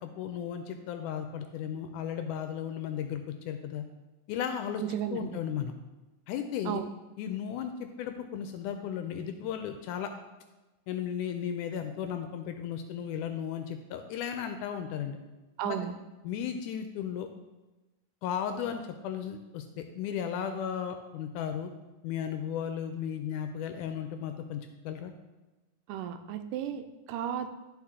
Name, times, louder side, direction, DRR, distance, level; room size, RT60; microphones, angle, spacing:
voice 1, 0.0-3.9 4.3-4.8 5.1-5.7 6.3-6.8 7.2-10.1 10.9-15.2 15.6-15.8 16.2-17.3 18.2-21.7 22.0-24.6 24.9-25.1, left 8 dB, 80° left, 7 dB, 1.9 m, -35 dB
voice 2, 4.8-5.4 6.7-6.9 15.6-15.9 25.9-27.5, right 9 dB, 85° right, 8 dB, 2.1 m, -34 dB
11.5 x 4.5 x 3.6 m, 1.1 s
omnidirectional pair, 3.8 m